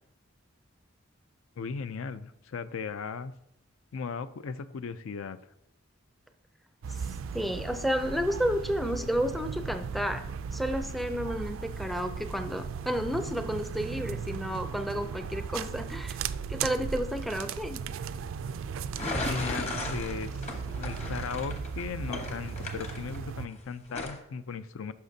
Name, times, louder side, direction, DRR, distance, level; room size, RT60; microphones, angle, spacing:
voice 1, 1.6-3.3 3.9-5.4 19.2-24.9, left 5 dB, 75° left, 13 dB, 0.4 m, -37 dB
sound 1, 6.8-23.5, right 6 dB, 70° right, 0.3 m, -37 dB
voice 2, 7.3-10.2 10.5-16.2 16.5-17.8, equal, ahead, 7 dB, 0.4 m, -31 dB
sound 2, 19.0-23.5 23.9-24.2, left 2 dB, 35° left, 1.0 m, -36 dB
11.5 x 5.7 x 2.7 m, 0.80 s
head